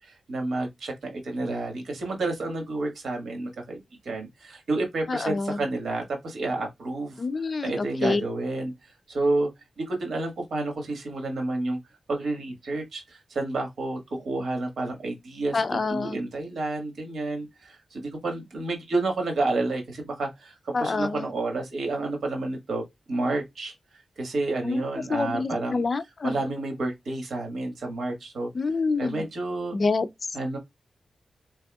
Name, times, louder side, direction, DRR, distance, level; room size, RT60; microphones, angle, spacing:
voice 1, 0.3-0.7 1.0-3.8 4.1-4.3 4.7-6.0 6.3-7.1 7.6-8.7 9.1-9.5 10.0-11.8 12.1-13.0 13.3-14.0 14.2-15.5 15.9-17.4 18.2-19.8 20.2-20.3 20.8-22.8 23.1-23.7 24.2-25.8 26.2-28.5 29.0-29.7 30.3-30.6, right 2 dB, 80° right, 1.6 m, -29 dB
voice 2, 5.1-5.6 7.2-8.2 15.5-16.2 20.7-21.3 24.6-24.8 25.1-26.4 28.5-29.3 29.7-30.1, left 4 dB, 50° left, 0.4 m, -27 dB
3.9 x 3.4 x 2.3 m
cardioid pair, 80°, 0 cm